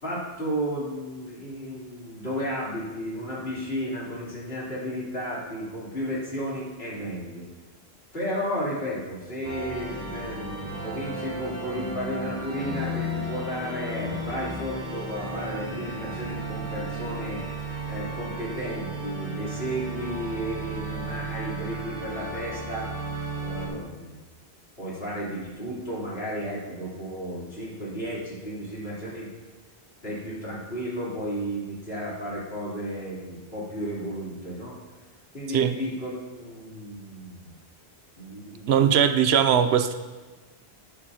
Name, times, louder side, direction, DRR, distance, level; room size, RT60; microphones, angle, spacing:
voice 1, 0.0-7.5 8.1-17.5 17.9-22.9 23.4-24.2 24.8-29.3 30.0-34.8 35.3-37.5 38.2-38.7, equal, 70° left, -7 dB, 3.7 m, -33 dB
sound 1, 9.4-23.7, right 1 dB, 15° left, 2.4 m, -34 dB
voice 2, 38.7-39.9, right 8 dB, 80° right, 10 dB, 0.9 m, -20 dB
12.0 x 10.0 x 2.9 m, 1.3 s
omnidirectional pair, 1.1 m